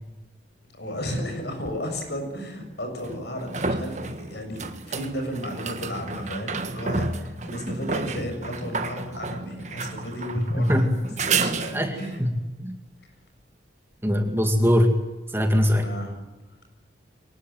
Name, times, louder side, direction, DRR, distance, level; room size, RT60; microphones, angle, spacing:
voice 1, 0.7-10.9 11.2-12.2 15.8-16.2, equal, 60° left, 4 dB, 7.2 m, -34 dB
sound 1, 1.6-1.7 3.0-12.2 15.6-15.7, right 3 dB, 40° right, 1.6 m, -31 dB
voice 2, 10.5-10.9 11.7-12.3 12.6-12.8 14.0-14.9 15.3-15.9, equal, 10° right, 5 dB, 2.2 m, -21 dB
24.0 x 20.0 x 9.3 m, 1.1 s
head